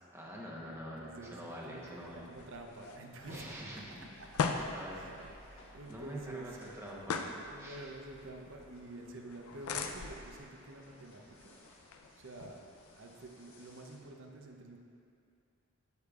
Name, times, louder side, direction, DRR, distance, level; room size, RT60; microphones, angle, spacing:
voice 1, 0.1-2.3 3.3-3.9 4.7-5.0 5.9-7.8, equal, 10° right, -4 dB, 0.9 m, -45 dB
voice 2, 0.7-6.8 7.3-11.6 12.2-12.7 13.0-14.8, right 2 dB, 60° right, 2 dB, 0.7 m, -49 dB
sound 1, 1.2-14.0, left 1 dB, 65° left, 1.4 m, -59 dB
sound 2, 2.0-13.3, left 5 dB, 85° left, 0.5 m, -42 dB
sound 3, 3.2-8.7, right 1 dB, 25° left, 0.9 m, -63 dB
8.5 x 8.3 x 2.4 m, 2.5 s
head